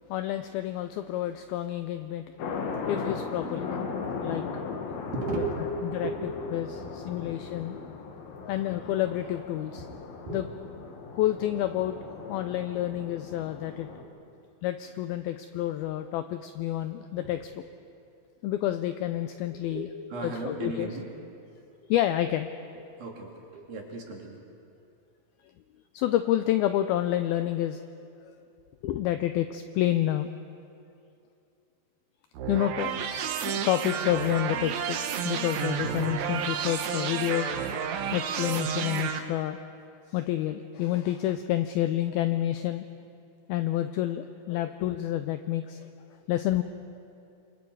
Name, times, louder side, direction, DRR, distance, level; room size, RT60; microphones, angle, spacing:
voice 1, 0.1-2.2 2.9-3.8 4.2-4.4 5.3-5.4 5.9-6.1 6.5-7.8 8.4-9.9 10.3-10.5 11.2-12.0 12.3-13.9 14.6-17.5 18.4-19.9 20.2-20.9 21.9-22.5 25.9-27.8 28.2-28.3 28.8-30.3 32.5-33.0 33.4-35.0 35.2-37.5 38.1-39.6 40.1-42.9 43.5-45.9 46.3-46.6, left 13 dB, 85° left, 9 dB, 2.2 m, -29 dB
sound 1, 2.4-14.0, left 5 dB, 65° left, 3.1 m, -37 dB
voice 2, 2.4-2.8 5.1-5.6 6.0-6.3 6.7-7.5 10.3-10.4 13.9-14.2 17.2-17.4 19.7-21.1 23.0-24.4, right 4 dB, 60° right, 0 dB, 4.1 m, -36 dB
sound 2, 32.3-39.2, right 8 dB, 90° right, 1.6 m, -31 dB
27.5 x 23.5 x 4.7 m, 2.6 s
omnidirectional pair, 4.9 m